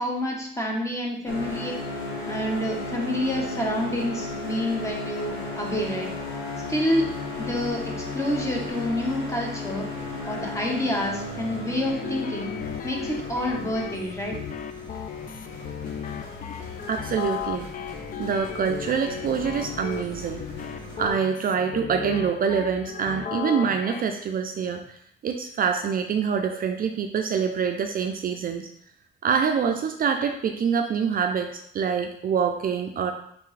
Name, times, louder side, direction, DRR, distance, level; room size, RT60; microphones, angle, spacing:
voice 1, 0.0-1.7 2.3-6.1 6.7-7.1 7.4-9.9 10.3-12.6 12.8-14.4, left 1 dB, 15° left, 0 dB, 1.1 m, -28 dB
sound 1, 1.2-21.1, left 2 dB, 65° left, 1.5 m, -35 dB
sound 2, 11.8-24.0, left 8 dB, 45° left, 0.4 m, -36 dB
voice 2, 16.9-17.7 18.2-20.4 21.0-25.0 25.2-28.7 29.2-33.1, right 6 dB, 45° right, 5 dB, 0.4 m, -25 dB
4.1 x 3.4 x 3.2 m, 0.68 s
cardioid pair, 90°, 20 cm